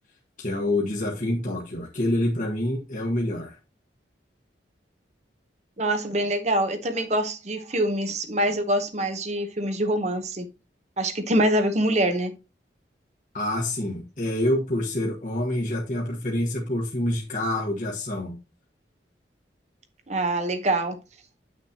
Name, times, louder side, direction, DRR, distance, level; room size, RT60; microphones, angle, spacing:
voice 1, 0.4-3.5 13.3-18.4, left 1 dB, 45° left, 1.2 m, -27 dB
voice 2, 5.8-10.5 11.0-12.3 20.1-21.0, right 1 dB, 40° right, 0.9 m, -25 dB
9.0 x 6.2 x 2.8 m
head